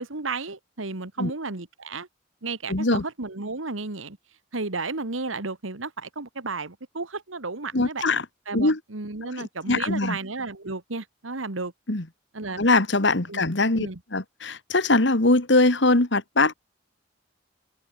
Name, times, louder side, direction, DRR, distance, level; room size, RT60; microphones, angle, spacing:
voice 1, 0.0-2.1 2.4-4.2 4.5-8.1 8.5-11.7 12.3-12.6 13.3-13.5 13.8-14.0, right 3 dB, 90° right, 1.9 m, -33 dB
voice 2, 2.7-3.0 7.7-8.3 8.5-8.8 9.4-10.2 11.9-12.0 12.6-13.9 14.1-16.5, left 2 dB, 60° left, 2.0 m, -22 dB
open air
head